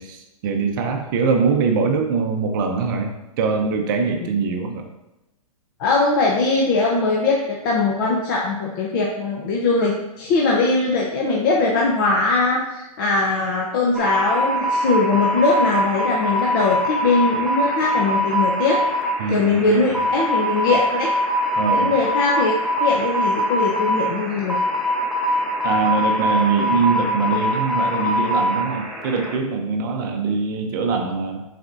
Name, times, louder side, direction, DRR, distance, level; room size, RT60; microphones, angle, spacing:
voice 1, 0.0-4.8 19.2-20.0 21.6-21.9 25.6-31.4, right 5 dB, 35° right, 4 dB, 0.6 m, -23 dB
voice 2, 5.8-18.8 19.3-21.1 21.7-22.5 22.8-24.6, left 3 dB, 35° left, -2 dB, 0.8 m, -21 dB
sound 1, 13.9-29.4, equal, ahead, 0.7 m, -23 dB
9.4 x 4.3 x 2.6 m, 0.94 s
hypercardioid pair, 155°, 18 cm